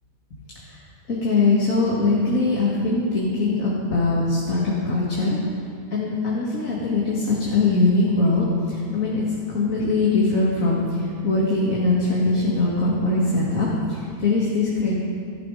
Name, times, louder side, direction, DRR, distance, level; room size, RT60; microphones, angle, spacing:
voice 1, 1.1-5.4 5.9-9.2 9.5-14.9, left 3 dB, 60° left, -5 dB, 2.6 m, -22 dB
17.5 x 15.0 x 5.0 m, 2.3 s
omnidirectional pair, 1.6 m